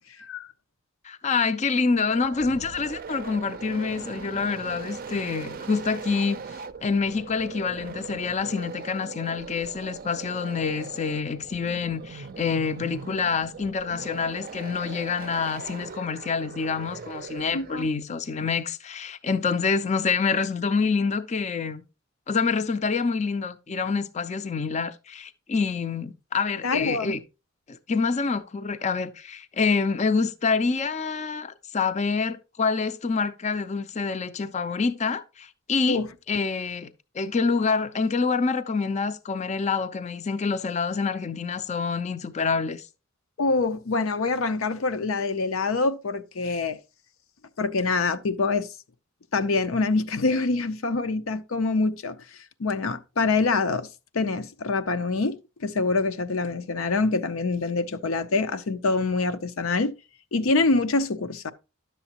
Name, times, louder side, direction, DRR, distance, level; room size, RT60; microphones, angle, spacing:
voice 1, 0.2-0.5 17.5-17.9 26.6-27.2 35.9-36.1 43.4-46.8 47.6-48.7 49.3-52.2 52.6-53.9 54.1-59.9 60.3-61.5, left 3 dB, 85° left, 0.6 m, -25 dB
voice 2, 1.0-6.4 6.8-21.8 22.3-27.2 27.7-36.0 36.3-42.8, left 5 dB, 35° left, 0.5 m, -27 dB
sound 1, 1.9-18.0, right 5 dB, 45° right, 0.5 m, -40 dB
10.5 x 7.0 x 2.9 m
head